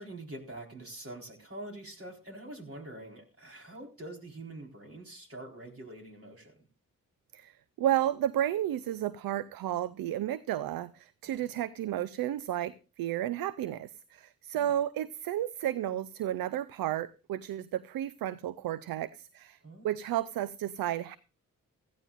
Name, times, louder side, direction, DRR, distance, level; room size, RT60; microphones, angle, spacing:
voice 1, 0.0-6.6 11.3-11.6 14.5-14.7 19.6-19.9, right 1 dB, 40° right, 4.2 m, -45 dB
voice 2, 7.3-19.6 19.8-21.2, right 12 dB, 80° right, 0.5 m, -32 dB
16.5 x 14.0 x 2.5 m
supercardioid pair, 45°, 35 cm